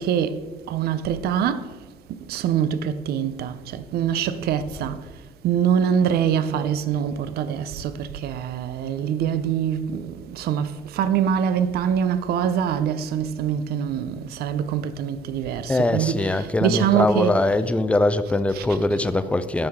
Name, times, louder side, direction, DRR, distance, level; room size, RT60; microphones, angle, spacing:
voice 1, 0.0-1.7 2.3-5.1 5.4-17.4 18.6-18.7, right 8 dB, 70° right, 0.5 m, -24 dB
voice 2, 15.7-19.7, left 2 dB, 5° left, 0.4 m, -22 dB
13.5 x 4.8 x 3.6 m
cardioid pair, 110°, 17 cm